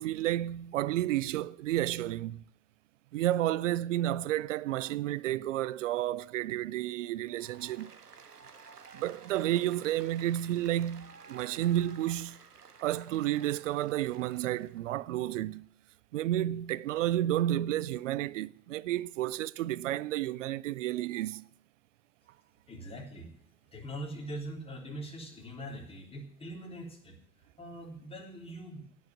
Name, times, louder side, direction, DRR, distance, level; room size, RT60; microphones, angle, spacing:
voice 1, 0.0-2.4 3.1-7.9 8.9-12.4 12.8-15.6 16.1-21.4, right 13 dB, 55° right, 0.6 m, -31 dB
Applause, 7.3-14.8, right 5 dB, 80° right, 1.3 m, -53 dB
voice 2, 22.7-23.3 23.7-27.2 27.6-28.9, right 1 dB, 10° left, 3.6 m, -42 dB
17.0 x 6.4 x 9.1 m
figure-of-eight pair, 90°, 46 cm